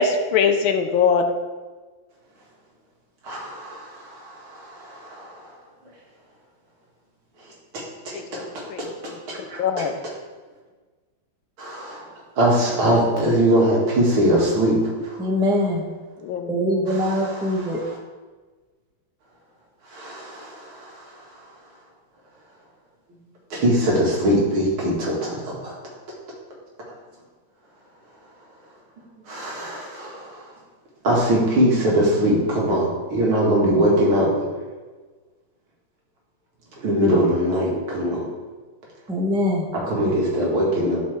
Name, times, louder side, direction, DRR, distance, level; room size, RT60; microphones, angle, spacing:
voice 1, 0.0-1.3 8.1-9.9 16.2-16.8, left 5 dB, 75° left, 6 dB, 1.5 m, -23 dB
voice 2, 3.2-5.5 7.7-8.4 8.8-8.9 9.3-9.8 11.6-12.1 12.4-14.8 15.0-15.2 16.9-18.0 19.9-21.1 23.5-25.7 29.3-30.5 31.0-34.3 36.8-38.2 39.7-41.0, equal, 85° right, -4 dB, 2.9 m, -22 dB
voice 3, 15.2-15.8 16.5-17.8 39.1-39.7, left 1 dB, 5° right, 0 dB, 0.4 m, -22 dB
12.0 x 5.5 x 3.5 m, 1.4 s
omnidirectional pair, 2.3 m